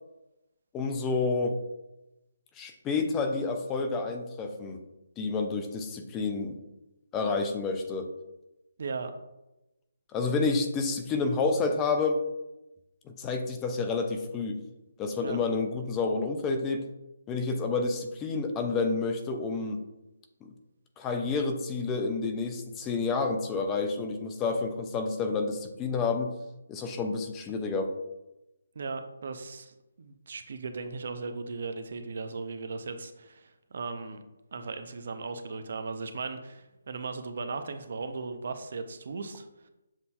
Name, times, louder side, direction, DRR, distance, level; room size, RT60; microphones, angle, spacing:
voice 1, 0.7-1.6 2.6-4.8 5.2-6.6 7.1-8.1 10.1-12.2 13.2-14.6 15.0-16.8 17.3-19.8 20.4-20.5 21.0-26.3 26.7-27.9, left 4 dB, 15° left, 5 dB, 0.4 m, -29 dB
voice 2, 8.8-9.1 15.2-15.4 28.8-34.2 34.5-39.5, right 4 dB, 60° right, 8 dB, 0.4 m, -37 dB
7.2 x 2.7 x 2.2 m, 0.95 s
figure-of-eight pair, 150°, 0 cm